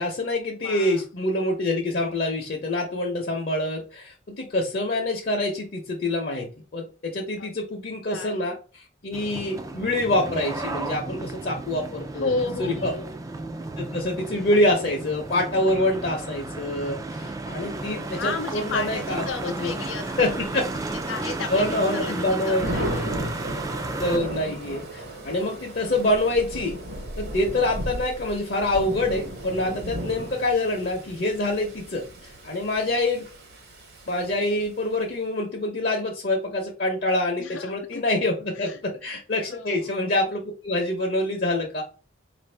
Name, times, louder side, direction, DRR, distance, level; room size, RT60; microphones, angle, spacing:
voice 1, 0.0-12.3 12.6-12.9 13.8-19.8 20.2-20.7 21.5-22.7 24.0-26.8 27.2-33.2 34.1-41.8, left 1 dB, 50° left, 0 dB, 0.7 m, -26 dB
voice 2, 0.6-1.0 7.4-7.5 8.1-8.4 12.1-13.1 17.6-20.5 21.1-23.1 37.4-38.0 38.5-38.8 39.5-39.9, left 4 dB, 90° left, 5 dB, 0.5 m, -33 dB
sound 1, 9.1-24.2, right 2 dB, 20° right, 0.3 m, -33 dB
Thunder / Rain, 18.3-34.9, equal, 55° right, 1.2 m, -36 dB
4.6 x 2.6 x 3.3 m, 0.36 s
head